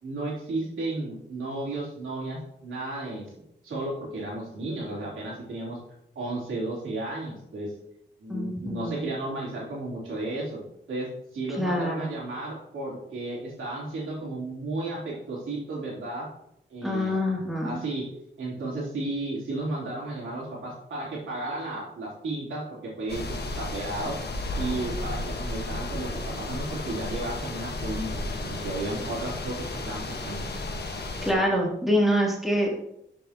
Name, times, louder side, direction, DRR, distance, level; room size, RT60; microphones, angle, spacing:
voice 1, 0.0-3.2 3.6-5.8 6.2-7.7 8.2-10.6 10.9-16.3 16.7-17.2 17.6-18.1 18.4-24.2 24.6-26.1 26.5-30.5, right 2 dB, 85° right, -6 dB, 3.6 m, -33 dB
voice 2, 8.3-9.0 11.6-12.1 16.8-17.8 31.2-32.8, equal, ahead, -4 dB, 3.1 m, -25 dB
sound 1, 23.1-31.3, left 2 dB, 55° left, 1.5 m, -33 dB
11.5 x 7.0 x 3.0 m, 0.78 s
cardioid pair, 70°, 20 cm